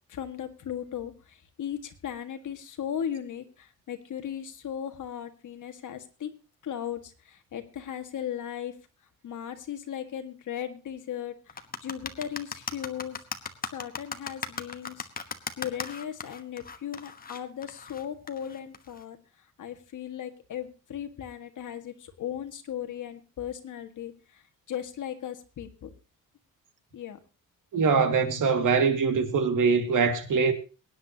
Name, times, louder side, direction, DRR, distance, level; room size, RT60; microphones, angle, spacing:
voice 1, 0.1-1.1 1.6-6.3 6.6-8.7 9.2-11.3 11.8-13.2 13.7-15.1 15.6-19.2 19.6-24.1 24.7-25.9 26.9-27.2, left 9 dB, 60° left, 1.9 m, -37 dB
sound 1, 11.5-19.0, left 5 dB, 25° left, 1.2 m, -37 dB
voice 2, 27.7-30.5, right 5 dB, 60° right, 2.2 m, -23 dB
23.0 x 10.0 x 2.9 m
wide cardioid pair, 175°, 35 cm